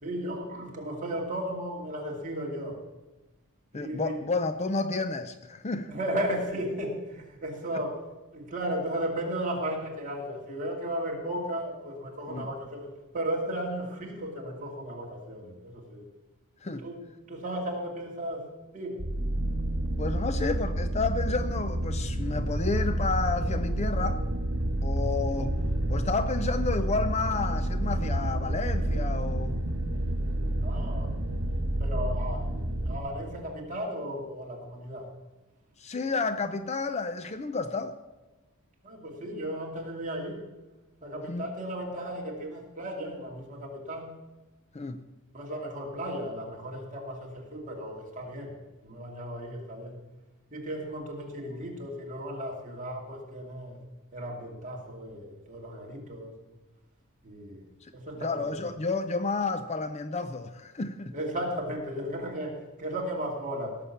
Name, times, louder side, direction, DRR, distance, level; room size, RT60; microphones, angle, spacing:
voice 1, 0.0-2.8 3.7-4.2 5.9-8.0 8.3-16.1 16.8-17.0 17.3-19.0 30.6-31.1 31.8-32.5 32.8-35.1 38.8-40.4 41.0-44.1 45.3-48.5 48.8-50.0 50.5-53.8 54.1-56.3 57.2-57.6 57.9-58.6 61.1-63.8, equal, 35° right, 2.4 m, -35 dB
voice 2, 3.7-5.9 7.7-7.8 12.3-12.5 16.6-16.8 20.0-24.2 24.8-25.6 25.9-29.6 35.8-37.9 41.3-41.5 44.7-45.0 57.8-57.9 58.2-61.1, left 3 dB, 30° left, 0.5 m, -31 dB
sound 1, 19.0-33.0, right 1 dB, 70° right, 1.5 m, -29 dB
17.0 x 6.8 x 7.1 m
head